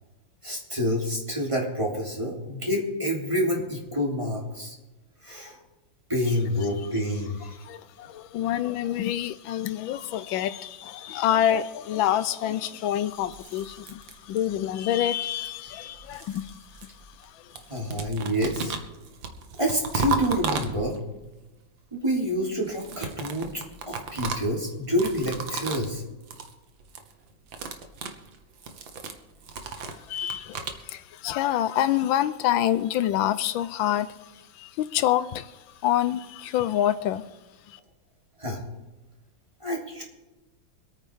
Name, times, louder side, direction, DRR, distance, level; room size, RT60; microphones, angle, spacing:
voice 1, 0.4-4.7 5.2-5.6 6.1-7.6 17.7-18.8 19.6-21.0 21.9-26.0 30.2-30.4 38.4-38.6 39.6-40.0, equal, 15° right, -2 dB, 3.2 m, -28 dB
voice 2, 7.7-16.6 29.8-34.1 34.6-35.5 35.8-37.2, left 11 dB, 85° left, 13 dB, 1.4 m, -27 dB
sound 1, 13.2-14.7 15.7-17.3 17.5-21.2 22.6-25.9 26.2-26.5 26.8-27.1 27.4-30.8, right 4 dB, 80° right, 2.0 m, -35 dB
26.0 x 9.2 x 3.6 m, 1.1 s
omnidirectional pair, 2.1 m